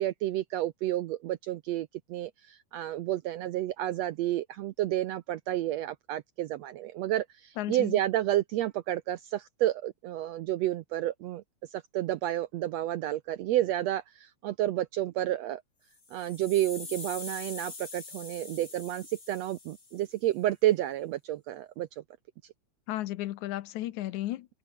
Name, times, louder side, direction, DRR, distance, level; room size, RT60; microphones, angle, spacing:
voice 1, 0.0-11.4 11.7-15.6 16.1-22.0, right 14 dB, 75° right, 1.6 m, -30 dB
voice 2, 7.6-8.0 22.9-24.5, left 15 dB, 75° left, 2.2 m, -34 dB
sound 1, 15.9-20.1, left 4 dB, 30° left, 4.0 m, -44 dB
omnidirectional pair, 3.7 m